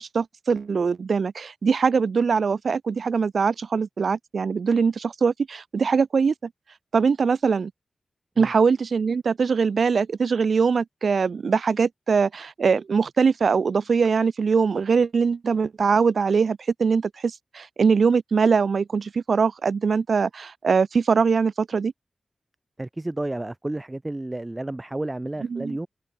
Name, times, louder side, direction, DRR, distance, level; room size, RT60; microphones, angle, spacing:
voice 1, 0.0-6.5 6.9-7.7 8.4-21.9 25.5-25.8, right 5 dB, 80° right, 0.9 m, -22 dB
voice 2, 22.8-25.9, right 1 dB, 25° right, 2.4 m, -31 dB
cardioid pair, 60°, 0 cm